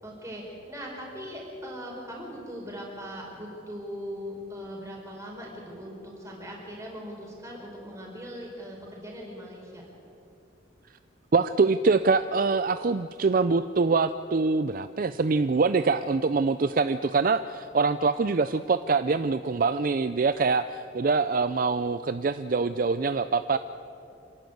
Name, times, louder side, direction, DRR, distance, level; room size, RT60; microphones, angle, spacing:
voice 1, 0.0-9.8, equal, 15° right, -2 dB, 4.9 m, -40 dB
voice 2, 11.3-23.6, right 4 dB, 45° right, 12 dB, 0.4 m, -24 dB
26.5 x 12.0 x 9.3 m, 2.7 s
head